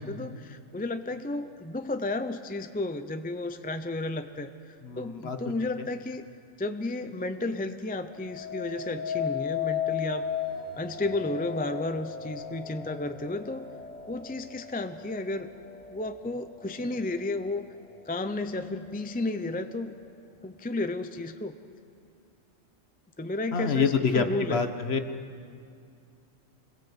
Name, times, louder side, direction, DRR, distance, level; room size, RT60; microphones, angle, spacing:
voice 1, 0.0-6.2 6.6-10.3 10.8-13.7 14.1-15.5 15.9-17.7 18.1-19.9 20.4-21.5 23.2-24.6, left 2 dB, 10° left, 9 dB, 0.6 m, -33 dB
voice 2, 4.8-5.4 5.8-5.9 23.5-25.0, left 5 dB, 55° left, 8 dB, 1.5 m, -27 dB
sound 1, 8.1-17.3 17.8-18.3, left 8 dB, 80° right, 4.0 m, -36 dB
26.0 x 21.0 x 8.1 m, 2.4 s
omnidirectional pair, 1.3 m